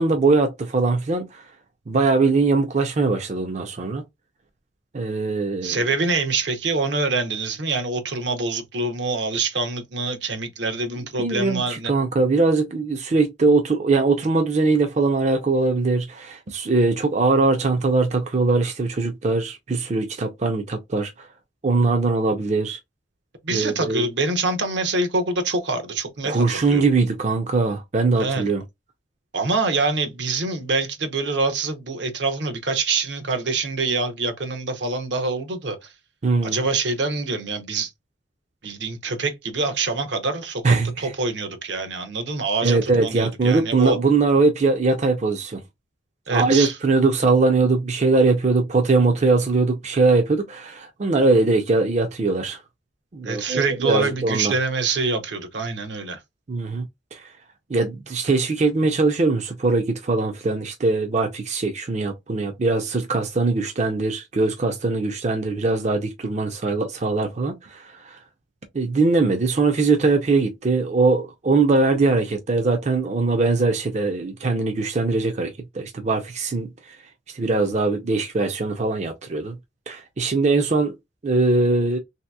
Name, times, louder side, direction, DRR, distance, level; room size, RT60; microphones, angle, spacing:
voice 1, 0.0-1.4 1.9-4.0 4.9-5.8 11.2-21.3 21.6-22.8 23.5-24.0 26.2-28.6 36.2-36.6 40.6-41.1 42.6-45.6 46.3-52.6 53.1-54.5 56.5-56.8 57.1-57.2 57.7-68.2 68.7-77.0 77.3-79.6 79.9-80.9 81.2-82.0, right 3 dB, 40° right, 0.5 m, -21 dB
voice 2, 5.6-11.9 23.4-26.8 28.2-28.4 29.3-35.9 36.4-37.9 38.6-44.0 46.3-46.7 53.2-56.2, right 3 dB, 65° right, 0.7 m, -25 dB
3.2 x 2.8 x 2.2 m
head